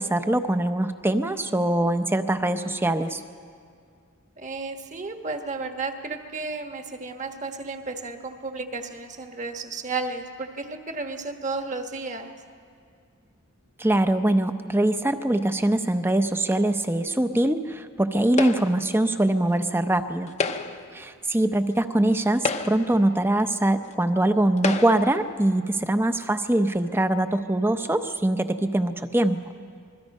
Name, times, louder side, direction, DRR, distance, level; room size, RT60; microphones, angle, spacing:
voice 1, 0.0-3.2 13.8-20.3 20.9-29.4, right 1 dB, 10° right, 9 dB, 0.7 m, -23 dB
voice 2, 4.4-12.3 20.6-21.0, right 3 dB, 35° right, 5 dB, 1.3 m, -33 dB
sound 1, 18.4-18.9 20.3-20.9 21.8-21.9 22.3-23.0 23.9-24.0 24.6-25.2, left 4 dB, 30° left, 0.8 m, -29 dB
27.0 x 21.5 x 5.4 m, 2.2 s
head